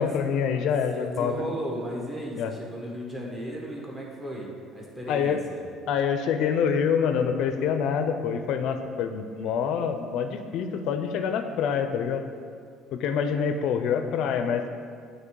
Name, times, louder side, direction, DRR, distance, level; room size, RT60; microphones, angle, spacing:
voice 1, 0.0-1.4 2.3-2.5 5.1-5.4 5.9-12.3 12.9-14.7, left 7 dB, 65° left, 7 dB, 0.5 m, -26 dB
voice 2, 0.9-4.5 4.7-5.6, equal, 15° right, -3 dB, 1.3 m, -35 dB
8.1 x 3.1 x 4.7 m, 2.2 s
cardioid pair, 120°, 0 cm